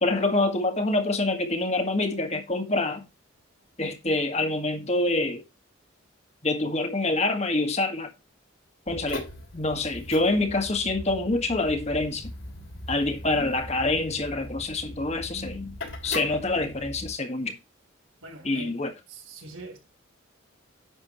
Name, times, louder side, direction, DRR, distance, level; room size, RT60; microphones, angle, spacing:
voice 1, 0.0-3.0 3.8-5.4 6.4-8.1 8.9-9.2 9.5-12.3 12.9-15.8 16.0-17.5 18.4-18.9, left 2 dB, 35° left, 1.7 m, -26 dB
sound 1, 8.9-17.1, left 1 dB, 70° left, 3.1 m, -40 dB
voice 2, 18.2-18.8 19.1-19.8, right 2 dB, 85° right, 3.7 m, -42 dB
10.5 x 7.3 x 3.1 m
head